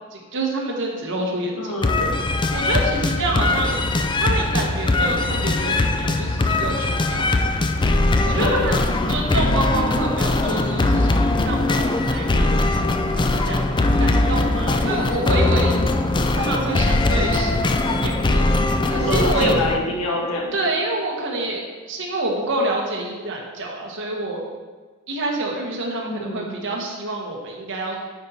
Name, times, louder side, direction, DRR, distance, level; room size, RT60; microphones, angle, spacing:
voice 1, 0.1-1.7 2.5-3.8 4.2-7.3 8.2-11.2 11.4-12.8 13.3-13.7 14.0-15.8 16.4-17.6 18.0-18.6 18.8-19.5 20.5-24.4 25.1-28.0, right 2 dB, 60° right, -1 dB, 1.3 m, -27 dB
voice 2, 1.5-2.1 8.4-8.6 9.0-9.2 18.9-20.5 26.0-26.6, left 1 dB, 75° left, -2 dB, 1.5 m, -26 dB
sound 1, 1.8-19.8, left 2 dB, 20° left, 0.4 m, -20 dB
9.6 x 4.1 x 4.3 m, 1.4 s
head